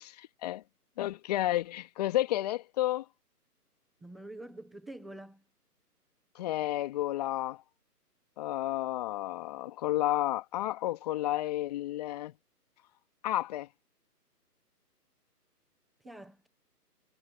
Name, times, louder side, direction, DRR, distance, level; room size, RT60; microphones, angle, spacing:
voice 1, 1.0-3.0 6.4-7.6 8.4-12.3 13.2-13.7, left 15 dB, 25° left, 2.4 m, -31 dB
voice 2, 4.0-5.4 16.0-16.5, right 1 dB, ahead, 0.6 m, -46 dB
figure-of-eight pair, 150°, 48 cm